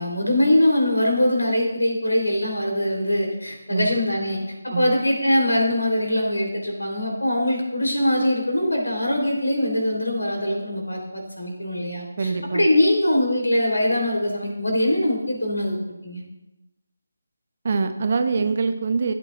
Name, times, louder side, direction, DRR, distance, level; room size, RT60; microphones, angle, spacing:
voice 1, 0.0-4.4 4.6-16.2, left 1 dB, 80° left, 0 dB, 3.9 m, -22 dB
voice 2, 12.2-12.6 17.6-19.1, right 4 dB, 45° right, 8 dB, 0.8 m, -24 dB
16.0 x 8.6 x 2.6 m, 0.99 s
figure-of-eight pair, 155°, 0 cm